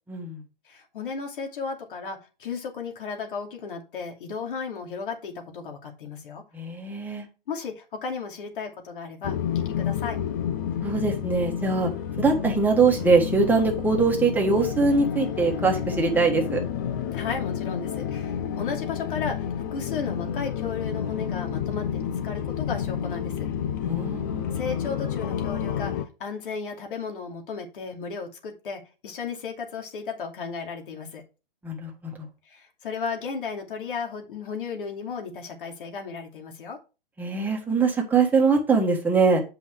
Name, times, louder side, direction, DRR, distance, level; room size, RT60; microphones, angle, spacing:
voice 1, 0.1-0.4 6.5-7.3 10.8-11.9 12.2-16.6 23.8-24.6 31.6-32.1 37.2-39.4, right 4 dB, 5° right, 1 dB, 1.4 m, -22 dB
voice 2, 0.6-6.4 7.5-10.2 17.1-23.5 24.5-31.2 32.5-36.8, left 5 dB, 65° left, 3 dB, 2.7 m, -34 dB
sound 1, 9.2-26.1, left 8 dB, 20° left, 0.3 m, -30 dB
8.4 x 5.6 x 4.6 m, 0.31 s
hypercardioid pair, 150°, 29 cm